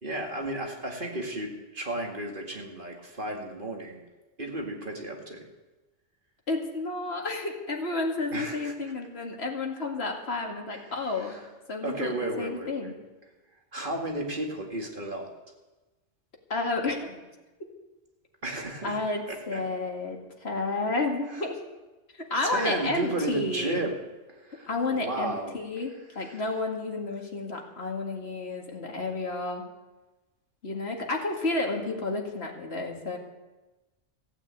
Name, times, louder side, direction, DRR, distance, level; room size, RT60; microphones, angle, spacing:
voice 1, 0.0-4.0 4.4-5.5 8.3-8.7 10.7-11.5 11.8-12.9 13.7-15.3 18.4-19.0 19.3-19.6 21.3-21.4 22.4-24.0 24.3-25.6 26.2-26.5, right 1 dB, 40° right, 1 dB, 2.3 m, -33 dB
voice 2, 6.5-11.4 11.7-13.0 16.5-17.2 18.8-21.6 22.3-23.8 24.7-29.6 30.6-33.2, left 3 dB, 55° left, 1 dB, 2.4 m, -31 dB
15.0 x 8.8 x 8.4 m, 1.1 s
omnidirectional pair, 1.3 m